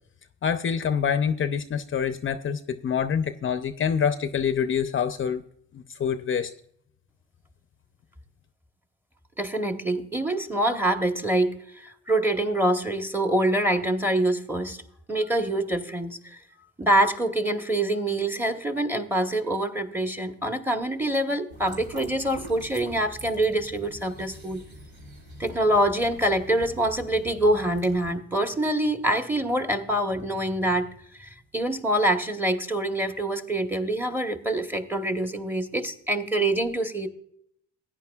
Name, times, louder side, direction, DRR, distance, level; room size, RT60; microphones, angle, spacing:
voice 1, 0.4-5.4 5.7-6.5, left 7 dB, 40° left, 10 dB, 0.6 m, -26 dB
voice 2, 9.4-14.8 15.1-16.4 16.8-24.6 25.4-30.9 31.2-37.1, right 1 dB, 5° right, 6 dB, 1.1 m, -25 dB
sound 1, 21.5-28.1, equal, 80° right, 4.0 m, -44 dB
16.0 x 9.9 x 2.4 m, 0.69 s
cardioid pair, 90°, 30 cm